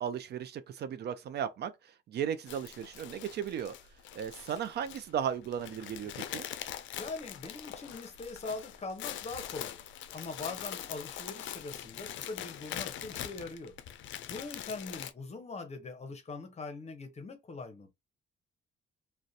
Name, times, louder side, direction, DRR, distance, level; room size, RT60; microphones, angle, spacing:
voice 1, 0.0-1.7 2.1-3.7 4.1-6.5, right 8 dB, 55° right, 0.4 m, -35 dB
sound 1, 2.5-15.1, left 11 dB, 75° left, 0.4 m, -43 dB
voice 2, 7.0-9.8 10.1-13.8 14.3-17.9, left 3 dB, 35° left, 0.7 m, -42 dB
2.4 x 2.1 x 2.6 m
cardioid pair, 90°, 20 cm